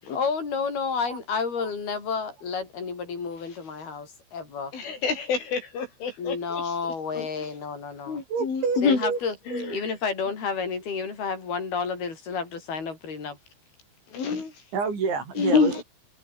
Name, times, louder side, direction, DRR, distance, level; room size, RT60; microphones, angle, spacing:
voice 1, 0.1-4.7 6.2-8.2 8.8-9.4 9.7-13.4, left 5 dB, 55° left, 8.8 m, -30 dB
voice 2, 4.7-6.7 7.1-7.3 8.1-9.0 9.5-9.7 14.1-14.5 15.4-15.8, left 5 dB, 85° left, 9.6 m, -26 dB
voice 3, 8.3-9.2 9.5-9.8 14.7-15.8, right 5 dB, 70° right, 9.3 m, -28 dB
omnidirectional pair, 5.4 m